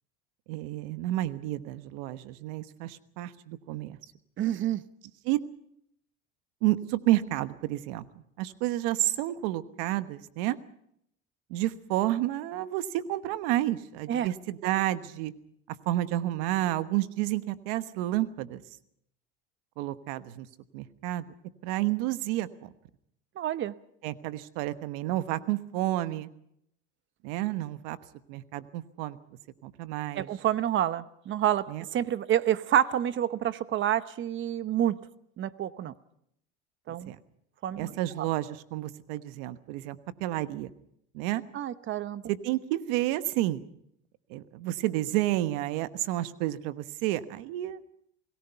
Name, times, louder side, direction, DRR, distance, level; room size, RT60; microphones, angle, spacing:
voice 1, 0.5-4.0 5.2-5.4 6.6-10.6 11.5-15.3 15.9-18.6 19.8-20.5 20.7-21.3 21.6-22.7 24.0-26.3 27.2-28.0 28.3-29.2 29.6-30.3 31.7-31.8 36.9-37.2 37.8-40.7 41.1-41.4 42.3-43.6 44.3-47.8, right 15 dB, 80° right, 13 dB, 1.2 m, -30 dB
voice 2, 4.4-4.8 14.1-14.3 23.4-23.7 30.2-31.7 31.9-35.0 35.4-35.9 36.9-37.1 37.6-37.9 38.2-38.3 41.5-42.2, right 11 dB, 40° right, 15 dB, 0.9 m, -28 dB
28.0 x 18.5 x 5.7 m, 0.74 s
supercardioid pair, 120°, 29 cm